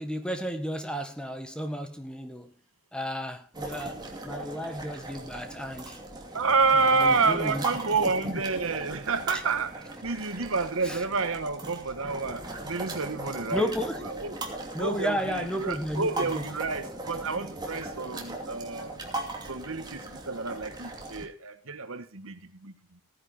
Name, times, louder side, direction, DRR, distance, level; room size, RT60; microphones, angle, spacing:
voice 1, 0.0-2.5 2.9-6.0 6.7-7.7 8.0-8.4 10.8-11.0 13.5-14.0 14.7-16.4, equal, 5° left, 1.6 m, -33 dB
sound 1, 3.5-21.2, right 2 dB, 20° right, 2.6 m, -39 dB
voice 2, 6.3-13.7 14.0-14.4 14.8-19.0 19.4-23.0, right 4 dB, 65° right, 1.4 m, -29 dB
16.5 x 10.0 x 4.3 m
head